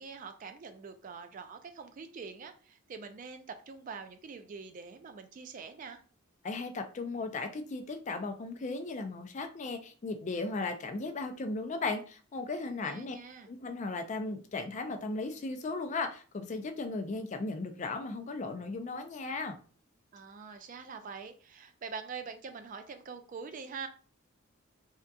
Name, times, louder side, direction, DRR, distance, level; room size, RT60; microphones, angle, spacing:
voice 1, 0.0-6.0 12.6-13.5 20.1-23.9, right 5 dB, 40° right, 8 dB, 0.3 m, -44 dB
voice 2, 6.4-13.2 13.5-19.6, left 3 dB, 35° left, 7 dB, 0.4 m, -36 dB
3.5 x 2.7 x 2.2 m, 0.39 s
head